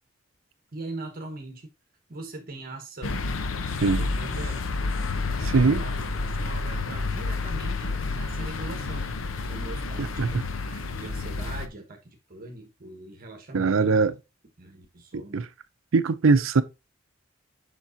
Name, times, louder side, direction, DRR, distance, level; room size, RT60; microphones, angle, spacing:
voice 1, 0.7-1.7 2.1-3.2 3.8-4.6 5.2-9.1 9.5-10.1 11.0-14.1 14.6-15.5, right 2 dB, 45° right, 1.2 m, -41 dB
sound 1, 3.0-11.7, left 3 dB, 85° left, 0.8 m, -30 dB
voice 2, 5.4-5.8 10.0-10.4 13.5-14.1 15.1-15.4 15.9-16.6, right 4 dB, 85° right, 0.6 m, -22 dB
7.4 x 5.9 x 2.6 m
head